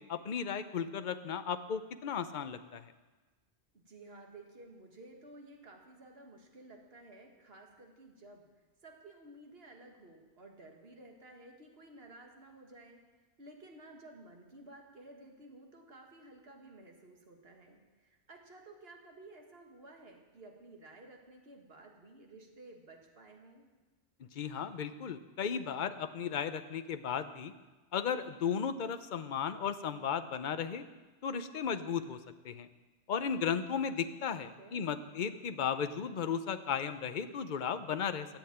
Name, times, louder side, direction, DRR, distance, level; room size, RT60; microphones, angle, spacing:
voice 1, 0.0-2.9 24.3-27.5 27.9-30.8 31.2-32.2 32.4-32.7 33.1-38.3, left 7 dB, 45° left, 10 dB, 0.8 m, -35 dB
voice 2, 3.7-8.5 8.8-13.0 13.4-23.7 34.3-34.9, right 2 dB, 55° right, 1 dB, 2.1 m, -54 dB
15.0 x 7.9 x 8.6 m, 1.2 s
omnidirectional pair, 1.2 m